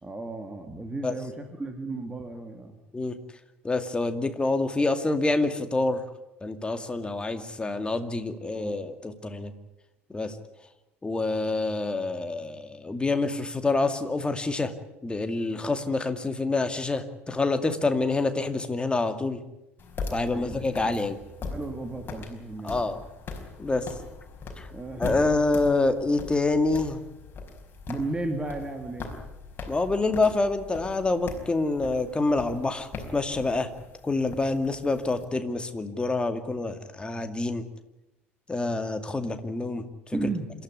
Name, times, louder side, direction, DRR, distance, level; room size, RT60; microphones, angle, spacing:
voice 1, 0.0-2.7 8.5-8.8 20.3-20.6 21.5-23.0 24.7-25.3 27.9-29.1 40.1-40.5, right 2 dB, 15° right, 5 dB, 2.7 m, -34 dB
voice 2, 3.6-6.0 6.4-9.5 10.1-10.4 11.0-14.7 15.0-19.4 20.1-21.2 22.6-23.0 23.6-23.9 24.6-24.7 25.0-27.0 29.7-33.7 34.0-37.6 38.5-40.2, left 3 dB, 15° left, 8 dB, 2.4 m, -27 dB
sound 1, 19.8-35.2, left 4 dB, 30° left, 5.0 m, -41 dB
27.5 x 13.5 x 9.8 m, 0.92 s
figure-of-eight pair, 65°, 7 cm